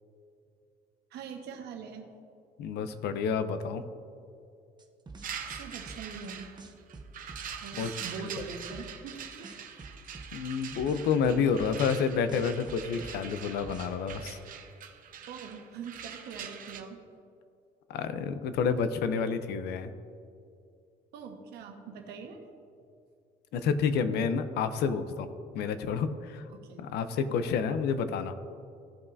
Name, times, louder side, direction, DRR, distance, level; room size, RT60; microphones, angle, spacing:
voice 1, 1.1-2.1 5.5-6.5 7.6-9.9 15.3-17.0 21.1-22.4 26.5-26.8, right 6 dB, 75° right, 3 dB, 1.3 m, -43 dB
voice 2, 2.6-3.8 7.8-7.9 10.3-14.4 17.9-19.9 23.5-25.3 25.5-26.4 26.8-28.3, left 6 dB, 75° left, 11 dB, 0.6 m, -29 dB
sound 1, 4.8-6.3 6.6-7.7 8.0-9.1 9.4-12.0 12.3-14.2, right 3 dB, 25° right, 0.9 m, -47 dB
sound 2, 5.2-16.8, right 8 dB, 55° right, 0.8 m, -43 dB
15.5 x 5.6 x 2.7 m, 2.5 s
cardioid pair, 110°, 17 cm